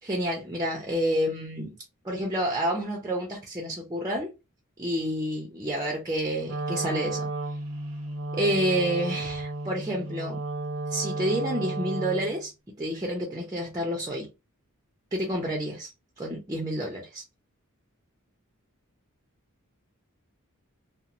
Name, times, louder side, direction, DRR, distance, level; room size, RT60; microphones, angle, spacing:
voice 1, 0.0-1.7 2.0-4.3 4.8-7.3 8.3-10.4 10.9-12.5 12.8-14.3 15.1-17.2, equal, 15° right, 0.5 m, -29 dB
Wind instrument woodwind instrument, 6.4-12.4, right 2 dB, 90° right, 0.7 m, -33 dB
2.9 x 2.0 x 2.5 m
head